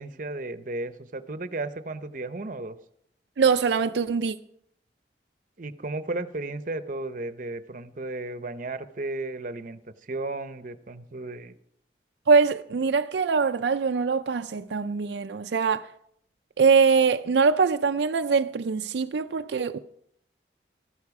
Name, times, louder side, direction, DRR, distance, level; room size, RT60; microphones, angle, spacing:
voice 1, 0.0-2.8 5.6-11.6, right 2 dB, 45° right, 0.7 m, -34 dB
voice 2, 3.4-4.4 12.3-15.9 16.6-19.8, right 5 dB, 80° right, 0.4 m, -23 dB
14.0 x 12.0 x 4.7 m
head